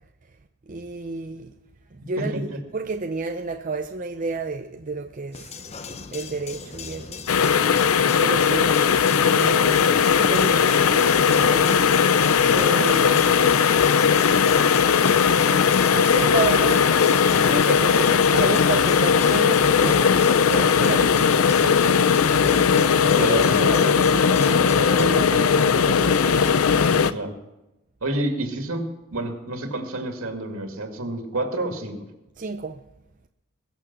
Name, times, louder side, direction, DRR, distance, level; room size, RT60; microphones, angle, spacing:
voice 1, 0.7-1.6 1.9-2.5 2.7-5.5 6.1-7.3 7.7-7.8 8.2-13.4 15.0-17.0 17.3-26.7 32.4-32.8, right 3 dB, 40° right, 0.6 m, -31 dB
voice 2, 2.2-2.6 23.1-23.6 26.9-27.3 28.0-32.0, right 1 dB, 80° right, 2.3 m, -29 dB
sound 1, 5.3-25.1, left 4 dB, 30° left, 0.7 m, -38 dB
sound 2, 7.3-27.1, left 6 dB, 85° left, 0.5 m, -18 dB
21.0 x 7.2 x 6.0 m
head